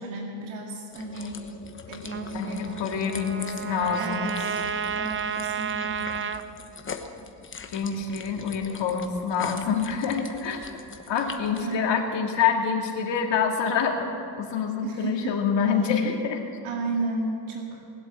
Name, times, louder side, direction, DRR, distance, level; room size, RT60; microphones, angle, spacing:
voice 1, 0.0-1.5 1.9-2.7 4.0-4.6 4.9-6.1 11.4-12.0 14.8-15.4 16.6-17.8, right 2 dB, 90° right, 0 dB, 2.2 m, -33 dB
sound 1, 0.9-11.7, left 5 dB, 25° left, 1.0 m, -42 dB
Trumpet, 2.1-6.4, right 7 dB, 25° right, 0.5 m, -31 dB
voice 2, 2.3-4.3 7.7-10.6 11.1-14.1 14.4-16.4, left 6 dB, 60° left, 2 dB, 2.1 m, -26 dB
20.0 x 7.8 x 7.3 m, 2.6 s
cardioid pair, 110°, 47 cm